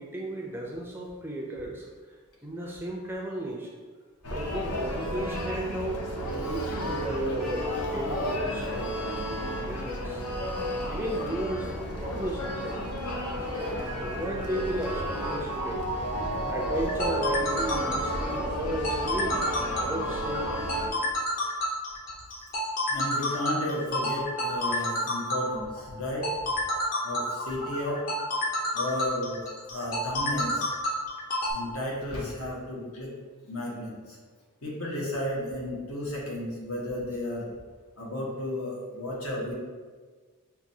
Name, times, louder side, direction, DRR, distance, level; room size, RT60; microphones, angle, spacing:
voice 1, 0.0-1.9 2.4-3.7 4.3-10.2 10.8-12.9 13.7-15.8 16.5-20.7 24.7-24.9, right 1 dB, 10° right, -2 dB, 0.3 m, -35 dB
sound 1, 4.2-20.9, equal, 90° left, 0.6 m, -33 dB
Mallet percussion, 12.6-19.0, right 2 dB, 90° right, 0.5 m, -35 dB
sound 2, 16.7-31.5, equal, 40° left, 0.6 m, -30 dB
voice 2, 22.9-26.3 27.0-28.0 28.7-30.7 31.5-33.1 33.4-34.2 34.6-37.5 38.0-39.5, left 1 dB, 70° left, -4 dB, 1.0 m, -33 dB
5.8 x 2.3 x 2.7 m, 1.5 s
head